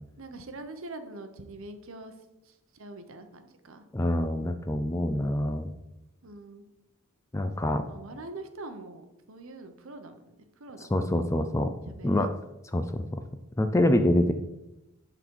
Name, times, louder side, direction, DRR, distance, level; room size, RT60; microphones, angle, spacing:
voice 1, 0.2-2.1 2.4-3.9 6.2-6.6 7.9-11.4 11.9-12.2, right 2 dB, 60° right, 8 dB, 0.9 m, -44 dB
voice 2, 3.9-5.7 7.3-7.8 10.9-11.7 12.0-12.3 12.7-13.2 13.6-14.3, left 1 dB, 15° left, 8 dB, 0.4 m, -25 dB
11.0 x 4.0 x 4.6 m, 0.92 s
head